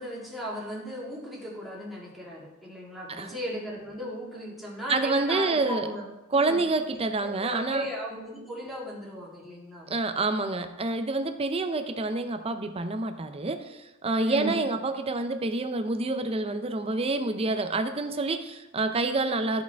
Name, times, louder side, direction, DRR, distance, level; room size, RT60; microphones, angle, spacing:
voice 1, 0.0-6.1 6.3-6.6 7.4-9.9 14.3-14.6, equal, ahead, -5 dB, 2.0 m, -36 dB
voice 2, 4.9-5.9 6.3-7.9 9.9-19.6, right 3 dB, 30° right, 8 dB, 0.6 m, -28 dB
13.0 x 5.0 x 3.4 m, 0.99 s
head